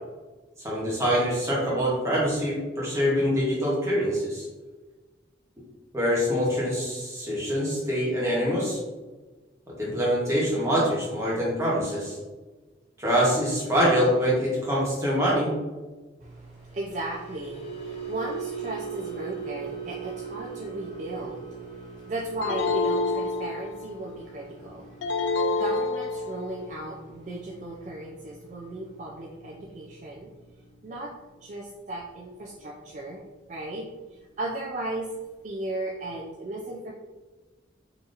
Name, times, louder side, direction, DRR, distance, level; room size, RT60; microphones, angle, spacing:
voice 1, 0.6-4.4 5.9-8.8 9.8-12.2 13.0-15.5, equal, 15° right, -6 dB, 1.0 m, -24 dB
voice 2, 16.2-30.3 30.8-33.2 33.5-33.9 34.4-35.2 35.4-36.9, right 2 dB, 40° right, -2 dB, 0.3 m, -36 dB
sound 1, 16.6-33.0 33.3-33.6 34.0-34.2, right 6 dB, 35° left, 0.6 m, -42 dB
sound 2, 22.4-24.0 25.0-26.6, left 3 dB, 85° left, 0.4 m, -27 dB
3.9 x 2.8 x 2.5 m, 1.2 s
head